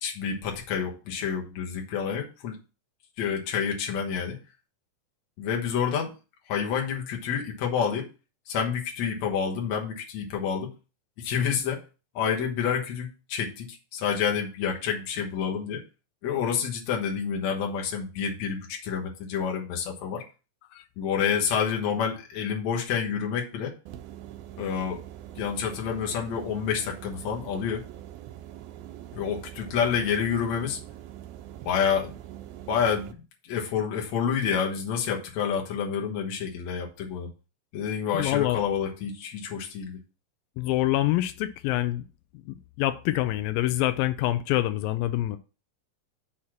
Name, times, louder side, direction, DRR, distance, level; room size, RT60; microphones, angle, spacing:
voice 1, 0.0-2.6 3.2-4.4 5.4-6.1 6.5-8.1 8.5-10.7 11.2-11.8 12.1-15.8 16.2-20.2 21.0-23.7 24.6-25.0 25.4-27.8 29.1-30.8 31.7-32.1 32.7-37.3 37.7-40.0, left 7 dB, 60° left, 2.4 m, -28 dB
sound 1, 23.9-33.1, right 12 dB, 90° right, 2.5 m, -43 dB
voice 2, 38.1-38.6 40.6-42.0 42.5-45.4, left 15 dB, 90° left, 2.4 m, -26 dB
6.4 x 4.2 x 5.9 m
omnidirectional pair, 4.1 m